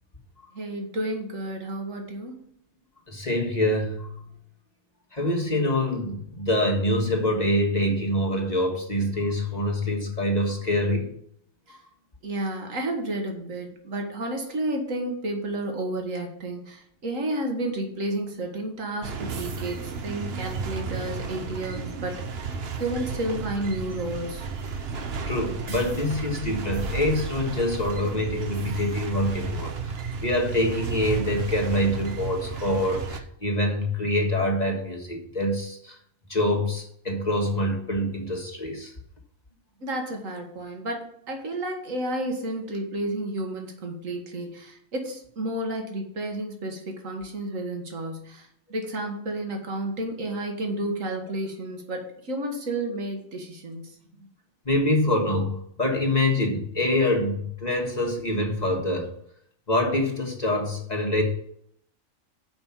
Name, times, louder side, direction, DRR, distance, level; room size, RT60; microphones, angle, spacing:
voice 1, 0.5-2.4 11.7-11.8 12.2-22.2 22.8-24.5 39.8-54.3, right 1 dB, 70° right, 3 dB, 2.0 m, -31 dB
voice 2, 3.1-4.2 5.1-11.1 25.3-29.7 30.2-36.0 36.3-38.9 54.6-59.1 59.7-61.2, left 1 dB, 30° left, 0 dB, 1.7 m, -25 dB
sound 1, 19.0-33.2, right 5 dB, 50° right, 1.1 m, -33 dB
6.9 x 5.4 x 7.1 m, 0.68 s
omnidirectional pair, 1.4 m